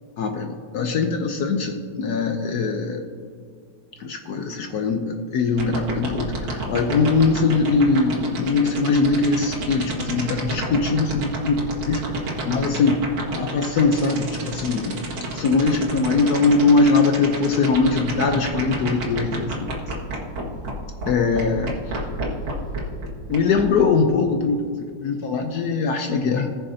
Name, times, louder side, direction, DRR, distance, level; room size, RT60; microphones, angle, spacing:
voice 1, 0.2-3.0 4.0-12.0 12.4-13.1 13.3-15.0 15.3-20.0 21.1-22.0 23.3-24.7 25.0-26.6, left 4 dB, 70° left, 4 dB, 1.0 m, -21 dB
sound 1, 5.6-20.7 21.0-21.1 21.3-23.6, right 3 dB, 85° right, 2.6 m, -29 dB
19.5 x 6.6 x 2.7 m, 2.2 s
omnidirectional pair, 2.2 m